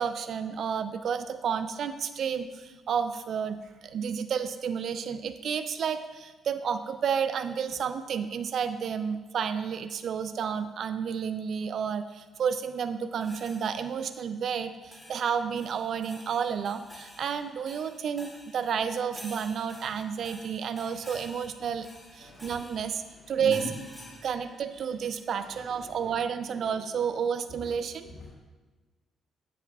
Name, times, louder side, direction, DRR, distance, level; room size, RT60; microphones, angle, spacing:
voice 1, 0.0-21.9 22.1-23.0 23.3-23.7 24.2-28.1, right 7 dB, 60° right, 10 dB, 0.3 m, -31 dB
sound 1, 13.2-14.0 14.9-25.2, left 1 dB, 5° left, 1.7 m, -50 dB
voice 2, 22.2-22.6 23.4-23.7 25.3-25.8 26.0-26.1 27.5-27.6 28.0-28.3, left 2 dB, 50° left, -6 dB, 1.4 m, -41 dB
8.1 x 7.1 x 2.3 m, 1.3 s
cardioid pair, 90°, 0 cm